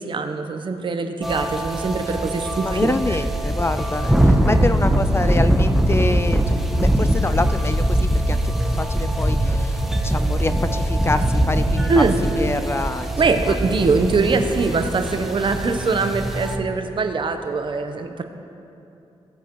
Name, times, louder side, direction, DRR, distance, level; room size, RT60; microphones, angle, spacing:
voice 1, 0.0-2.9 11.9-12.1 13.2-18.2, right 4 dB, 50° right, 6 dB, 0.9 m, -22 dB
sound 1, 1.2-16.6, right 1 dB, ahead, 0.9 m, -21 dB
voice 2, 2.6-8.4 8.7-12.1 12.4-13.3, left 2 dB, 25° left, 11 dB, 0.4 m, -26 dB
18.0 x 8.1 x 3.1 m, 2.8 s
cardioid pair, 70°, 11 cm